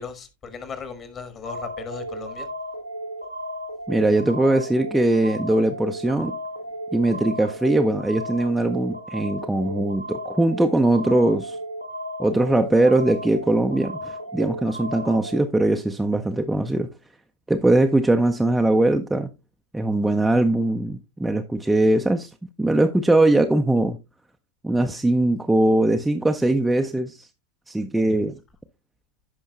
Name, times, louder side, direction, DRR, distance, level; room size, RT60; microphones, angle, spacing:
voice 1, 0.0-2.5, left 5 dB, 25° left, 1.4 m, -36 dB
sound 1, 1.4-15.4, equal, 90° right, 0.8 m, -34 dB
voice 2, 3.9-6.3 6.9-11.6 12.2-16.9 17.5-19.3 19.7-22.3 22.6-24.0 24.6-27.3 27.7-28.4, right 1 dB, 5° right, 0.5 m, -21 dB
15.5 x 5.4 x 2.2 m
figure-of-eight pair, 90°, 0 cm